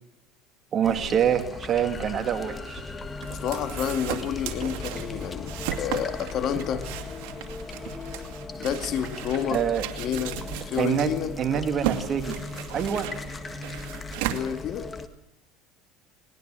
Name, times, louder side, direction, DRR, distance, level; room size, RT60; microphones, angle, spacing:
voice 1, 0.7-2.8 9.5-9.8 10.8-11.1 11.4-12.4 12.7-13.1, right 8 dB, 40° right, 7 dB, 2.3 m, -25 dB
sound 1, 0.8-15.1, left 4 dB, 20° left, 1.6 m, -38 dB
sound 2, 2.7-15.2, right 13 dB, 75° right, 2.4 m, -36 dB
voice 2, 3.3-5.5 5.8-6.8 8.6-9.6 10.0-11.3 14.3-14.9, left 8 dB, 50° left, 9 dB, 2.4 m, -29 dB
21.5 x 19.0 x 7.7 m, 0.81 s
supercardioid pair, 120°, 0 cm